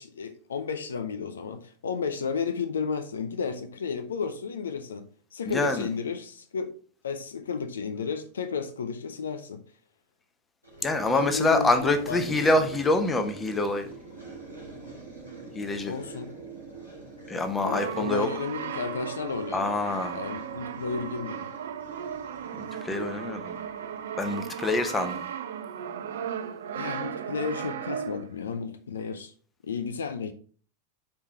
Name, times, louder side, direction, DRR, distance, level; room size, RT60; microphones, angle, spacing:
voice 1, 0.0-6.7 7.0-9.6 11.1-12.7 15.9-16.3 17.6-19.7 20.1-21.5 26.8-29.3 29.6-30.3, left 5 dB, 65° left, 0.5 m, -33 dB
voice 2, 5.5-5.9 10.8-13.9 15.5-15.9 17.3-18.3 19.5-20.1 22.6-23.6 24.2-25.2, left 2 dB, 15° left, 0.9 m, -26 dB
sound 1, 10.6-24.5, right 3 dB, 90° left, 3.0 m, -45 dB
Brass instrument, 17.6-28.4, right 8 dB, 60° right, 0.5 m, -36 dB
5.4 x 4.8 x 4.3 m
figure-of-eight pair, 90°, 0 cm